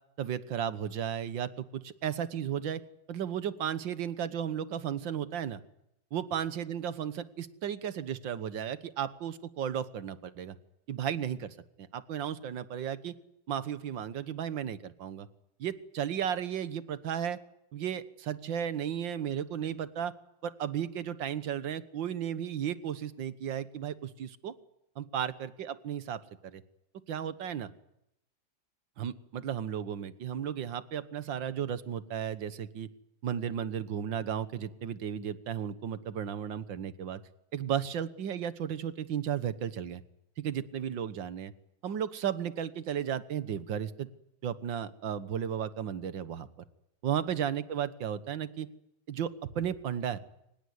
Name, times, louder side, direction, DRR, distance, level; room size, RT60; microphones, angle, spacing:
voice 1, 0.2-2.8 3.1-5.6 6.1-10.6 10.9-13.2 13.5-15.3 15.6-17.4 17.7-20.1 20.4-24.5 25.0-26.6 27.1-27.7 29.0-32.9 33.2-37.2 37.5-40.0 40.4-41.5 41.8-44.1 44.4-46.5 47.0-48.7 49.1-50.2, right 9 dB, 80° right, 14 dB, 2.0 m, -34 dB
24.5 x 19.5 x 9.6 m, 0.83 s
omnidirectional pair, 2.0 m